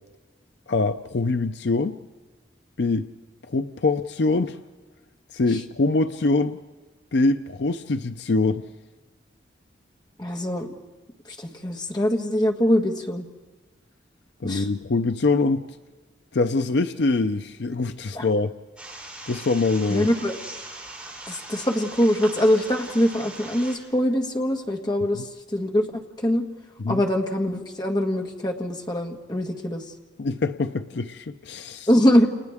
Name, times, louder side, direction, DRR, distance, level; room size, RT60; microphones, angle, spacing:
voice 1, 0.7-2.0 2.8-3.1 3.5-4.6 5.3-6.6 7.1-8.7 14.4-15.6 16.3-18.5 19.3-20.1 25.1-25.2 26.8-27.0 30.2-31.9, left 3 dB, 70° left, 0.6 m, -24 dB
voice 2, 10.2-10.7 11.3-13.3 14.4-14.7 18.1-18.3 19.9-20.4 21.3-25.9 26.2-26.4 26.9-29.8 31.9-32.3, equal, 20° left, 1.6 m, -23 dB
sound 1, 18.8-23.8, right 2 dB, 5° right, 6.9 m, -40 dB
29.5 x 29.5 x 3.6 m
head